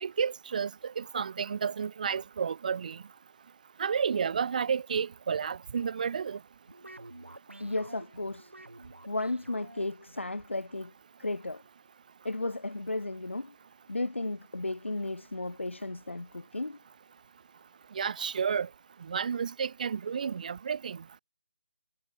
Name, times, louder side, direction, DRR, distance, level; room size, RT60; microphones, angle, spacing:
voice 1, 0.0-3.0 3.8-6.4 17.9-18.7 19.1-21.0, right 6 dB, 40° right, 0.9 m, -31 dB
sound 1, 6.7-10.3, right 2 dB, 90° right, 7.3 m, -50 dB
voice 2, 7.6-8.5 9.1-10.9 11.2-11.6 12.2-13.5 13.9-16.8, left 2 dB, 85° left, 3.0 m, -34 dB
figure-of-eight pair, 155°, 6 cm